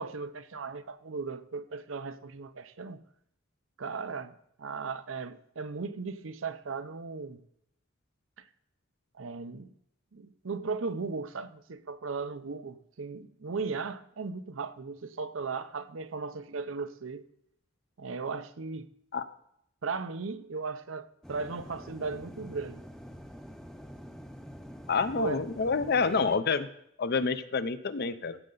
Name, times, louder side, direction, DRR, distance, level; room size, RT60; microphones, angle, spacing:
voice 1, 0.0-3.0 3.8-7.4 9.2-9.7 10.1-17.2 18.0-18.9 19.8-22.8 25.1-25.4, right 4 dB, 80° right, 0.7 m, -37 dB
sound 1, 21.2-26.4, equal, 5° left, 0.6 m, -46 dB
voice 2, 24.9-26.7 27.0-28.4, left 4 dB, 55° left, 0.6 m, -28 dB
15.0 x 7.6 x 3.9 m
head